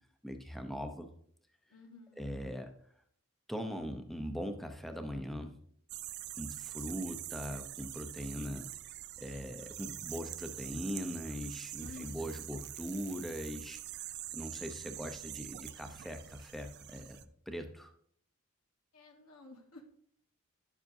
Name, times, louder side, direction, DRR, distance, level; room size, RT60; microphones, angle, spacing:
voice 1, 0.2-1.1 2.2-2.7 3.5-5.6 6.4-8.7 9.2-13.8 14.3-17.2 17.5-17.9, equal, ahead, 6 dB, 0.7 m, -40 dB
voice 2, 1.7-2.2 11.8-12.3 18.9-19.9, left 3 dB, 85° left, 3 dB, 1.4 m, -52 dB
sound 1, 5.9-17.2, right 14 dB, 50° right, 0.3 m, -45 dB
9.8 x 7.3 x 2.7 m, 0.64 s
head